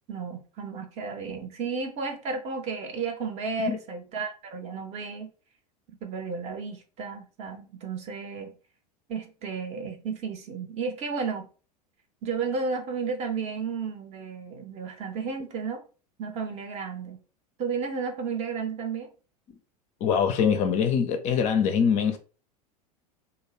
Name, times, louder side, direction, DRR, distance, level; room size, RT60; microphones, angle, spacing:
voice 1, 0.1-5.3 6.0-8.5 9.1-11.5 12.2-15.8 16.2-17.2 17.6-19.1, right 5 dB, 35° right, 0.6 m, -33 dB
voice 2, 20.0-22.2, left 7 dB, 35° left, 0.4 m, -23 dB
2.4 x 2.2 x 3.1 m
figure-of-eight pair, 80°, 20 cm